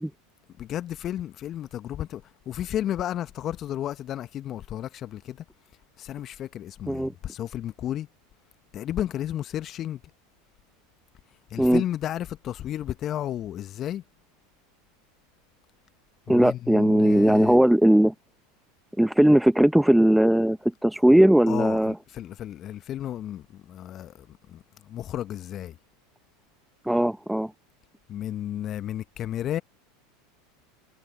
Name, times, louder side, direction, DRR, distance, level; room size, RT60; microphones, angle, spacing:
voice 1, 0.6-5.4 6.0-8.1 8.7-10.0 11.5-14.0 16.3-17.6 21.5-25.8 28.1-29.6, left 11 dB, 40° left, 1.3 m, -33 dB
voice 2, 16.3-18.1 19.0-21.9 26.8-27.5, right 1 dB, 5° right, 1.4 m, -19 dB
figure-of-eight pair, 80°, 0 cm